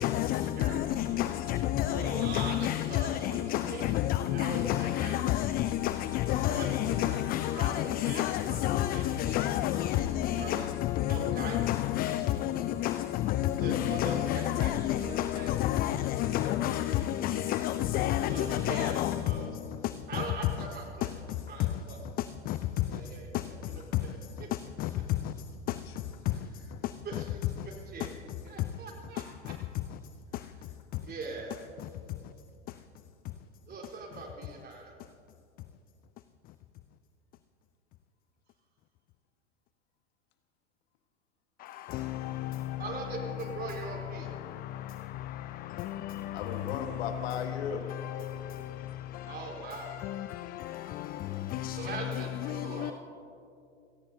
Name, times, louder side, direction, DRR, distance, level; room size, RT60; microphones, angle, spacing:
voice 1, 0.0-13.0 13.2-19.2 41.9-42.0 51.6-51.8 52.8-52.9, left 13 dB, 25° left, 0.4 m, -29 dB
voice 2, 1.9-3.4 3.7-3.8 4.3-5.2 6.5-6.7 7.0-7.2 7.6-7.7 8.0-8.2 8.5-8.6 8.9-9.3 10.4-10.7 11.1-11.6 13.6-14.7 15.0-15.6 18.3-19.5 20.1-21.1 21.5-22.0 22.9-23.6 24.0-24.5 27.0-27.2 27.6-28.1 28.4-29.2 31.0-31.5 33.7-34.9 42.8-44.3 49.2-49.9 51.8-52.9, right 4 dB, 25° right, 4.0 m, -41 dB
voice 3, 46.3-47.8, left 7 dB, 60° left, 1.5 m, -36 dB
29.5 x 17.5 x 2.8 m
figure-of-eight pair, 90°, 36 cm